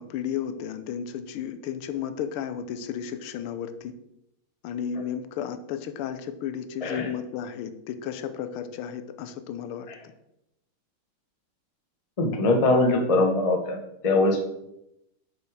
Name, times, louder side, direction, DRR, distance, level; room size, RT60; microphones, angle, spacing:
voice 1, 0.0-3.9 4.6-9.9, left 8 dB, 85° left, 10 dB, 1.5 m, -33 dB
voice 2, 12.2-13.8 14.0-14.5, left 2 dB, 35° left, 3 dB, 0.5 m, -22 dB
6.3 x 5.3 x 4.8 m, 0.84 s
omnidirectional pair, 2.3 m